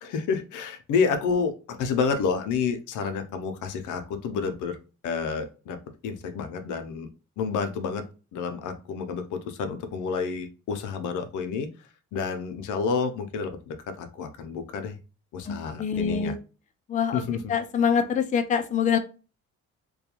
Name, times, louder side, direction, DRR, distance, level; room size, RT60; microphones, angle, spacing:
voice 1, 0.0-4.8 5.0-7.1 7.4-8.0 8.3-11.7 12.1-15.0 15.3-16.3 17.1-17.4, left 5 dB, 80° left, 8 dB, 0.6 m, -29 dB
voice 2, 15.5-16.4 16.9-17.2 17.5-19.0, left 7 dB, 25° left, 8 dB, 0.4 m, -25 dB
2.2 x 2.2 x 2.9 m, 0.33 s
cardioid pair, 90°, 30 cm